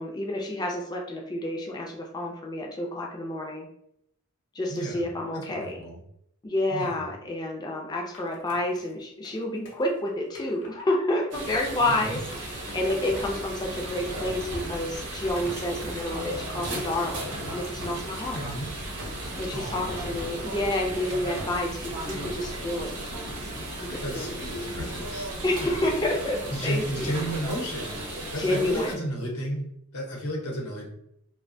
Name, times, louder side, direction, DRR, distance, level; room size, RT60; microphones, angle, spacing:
voice 1, 0.0-3.7 4.5-5.8 6.4-18.4 19.4-23.0 23.8-24.3 25.4-27.1 28.4-29.0, left 1 dB, 20° left, 0 dB, 0.3 m, -29 dB
voice 2, 4.7-6.0 6.7-7.0 11.9-12.2 18.3-18.7 19.5-20.1 24.0-25.3 25.6-25.8 26.5-29.6 29.9-30.9, equal, 85° left, -1 dB, 0.8 m, -33 dB
Skateboard, 8.1-10.9 11.5-13.3 13.6-15.8, left 2 dB, 55° left, 0.6 m, -50 dB
sound 1, 11.3-28.9, right 1 dB, 90° right, 0.7 m, -36 dB
sound 2, 13.1-22.3, equal, 50° right, 0.7 m, -41 dB
2.5 x 2.1 x 2.6 m, 0.75 s
head